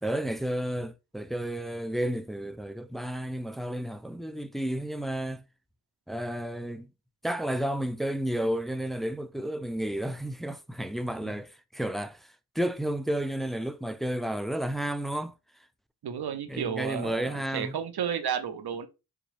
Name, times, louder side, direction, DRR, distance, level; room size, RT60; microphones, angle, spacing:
voice 1, 0.0-5.4 6.1-6.9 7.2-15.3 16.5-17.8, right 1 dB, ahead, 0.3 m, -32 dB
voice 2, 16.0-18.9, right 8 dB, 75° right, 0.7 m, -32 dB
3.9 x 2.4 x 3.2 m
cardioid pair, 50°, 39 cm